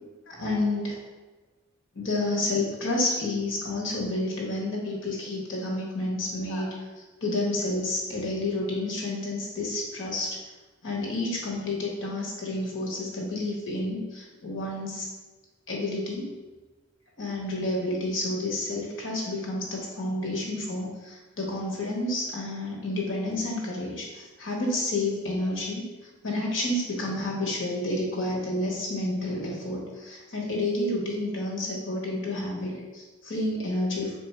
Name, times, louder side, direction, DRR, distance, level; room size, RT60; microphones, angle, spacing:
voice 1, 0.3-1.0 1.9-6.8 7.2-10.4 10.8-15.1 15.7-16.2 17.2-25.8 26.2-34.2, left 2 dB, 65° left, -2 dB, 1.0 m, -30 dB
3.3 x 2.6 x 4.2 m, 1.2 s
head